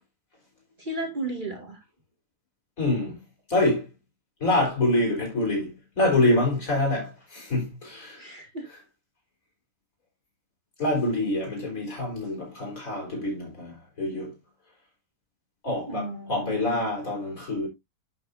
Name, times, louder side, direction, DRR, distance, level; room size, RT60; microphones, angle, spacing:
voice 1, 0.8-1.8 8.2-8.6 15.9-16.9, right 2 dB, 30° right, 2.3 m, -34 dB
voice 2, 2.8-3.2 3.5-3.9 4.4-8.2 10.8-14.3 15.6-17.7, left 2 dB, 60° left, 4.9 m, -26 dB
11.0 x 6.3 x 2.7 m
omnidirectional pair, 1.6 m